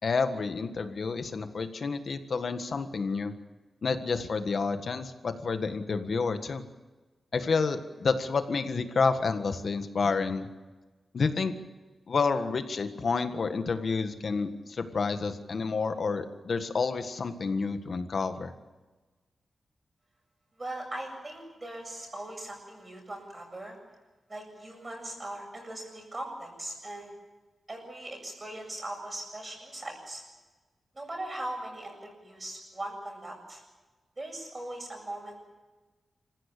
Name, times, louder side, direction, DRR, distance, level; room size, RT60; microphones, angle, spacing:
voice 1, 0.0-3.3 3.8-6.6 7.3-10.5 11.1-11.5 12.1-18.5, left 4 dB, 55° left, 8 dB, 1.6 m, -29 dB
voice 2, 20.6-23.8 24.3-27.1 27.7-30.2 30.9-33.6 34.2-35.4, right 1 dB, 25° right, 2 dB, 7.7 m, -40 dB
26.5 x 15.5 x 8.5 m, 1.2 s
wide cardioid pair, 120°, 0 cm